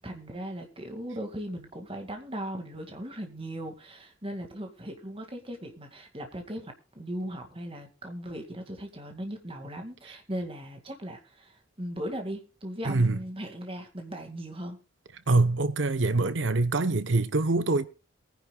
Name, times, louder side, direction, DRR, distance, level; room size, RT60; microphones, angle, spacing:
voice 1, 0.0-14.8, equal, 30° right, 2.1 m, -38 dB
voice 2, 12.8-13.2 15.3-17.9, right 2 dB, 70° right, 1.0 m, -24 dB
22.5 x 10.0 x 2.3 m
head